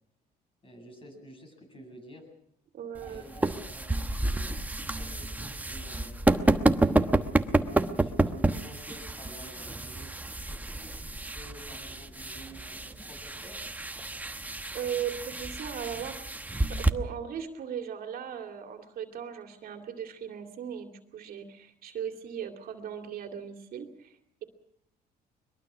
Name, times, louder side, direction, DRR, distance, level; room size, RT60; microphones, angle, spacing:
voice 1, 0.6-2.3 3.0-6.2 6.8-10.1 10.5-10.9 11.3-13.6, equal, 30° left, 4 dB, 8.0 m, -50 dB
voice 2, 2.7-3.2 14.7-16.2 16.7-24.4, right 8 dB, 60° right, 4 dB, 2.6 m, -38 dB
sound 1, 3.0-16.9, right 2 dB, 10° right, 1.1 m, -29 dB
22.0 x 22.0 x 6.2 m, 0.70 s
cardioid pair, 110°, 17 cm